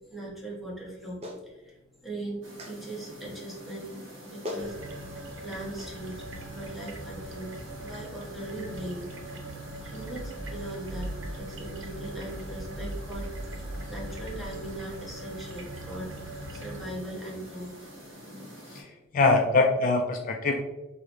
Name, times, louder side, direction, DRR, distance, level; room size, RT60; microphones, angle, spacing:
voice 1, 0.1-3.9 4.2-4.8 5.4-9.1 9.5-9.6 9.8-16.1 16.4-17.7, right 1 dB, ahead, -5 dB, 0.9 m, -40 dB
Clapping, 1.2-1.4 2.6-2.8 4.0-4.1 4.4-4.7 5.8-5.9, left 2 dB, 30° right, 0.7 m, -37 dB
sound 1, 2.4-18.8, equal, 90° right, 1.4 m, -47 dB
sound 2, 4.6-16.8, right 1 dB, 70° right, 0.6 m, -40 dB
voice 2, 18.7-20.6, left 3 dB, 45° left, 3 dB, 0.3 m, -24 dB
3.7 x 3.1 x 3.2 m, 1.1 s
head